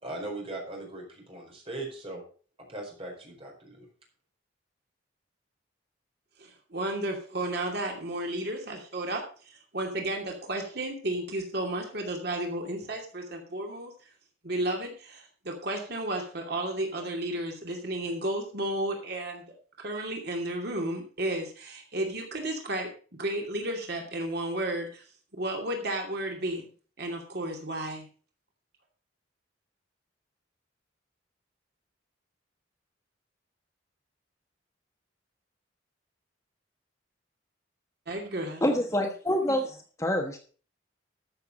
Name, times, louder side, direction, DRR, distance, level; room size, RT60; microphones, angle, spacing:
voice 1, 0.0-2.2 2.7-3.9, right 2 dB, 30° right, 1 dB, 4.7 m, -39 dB
voice 2, 6.4-13.9 14.4-22.9 23.2-25.0 25.3-26.7 27.0-28.1 38.1-38.6, right 1 dB, 55° right, 2 dB, 2.6 m, -33 dB
voice 3, 38.6-40.4, left 1 dB, 15° left, 3 dB, 1.2 m, -27 dB
13.5 x 6.9 x 5.3 m, 0.40 s
head